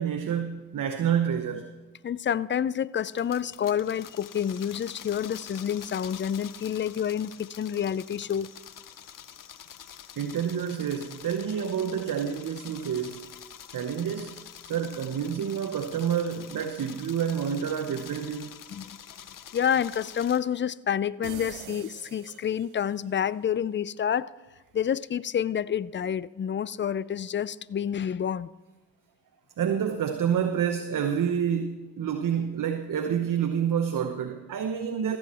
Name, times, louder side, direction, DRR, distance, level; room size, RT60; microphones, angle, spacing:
voice 1, 0.0-1.7 10.2-13.3 13.7-18.6 29.6-35.2, right 8 dB, 55° right, 0.9 m, -28 dB
voice 2, 2.0-8.5 18.7-18.9 19.5-24.3 24.7-28.5, left 9 dB, 30° left, 0.4 m, -28 dB
sound 1, 3.0-20.4, left 9 dB, 55° left, 0.8 m, -46 dB
sound 2, 21.2-23.0, right 14 dB, 80° right, 0.5 m, -44 dB
14.5 x 7.9 x 4.3 m
supercardioid pair, 40°, 38 cm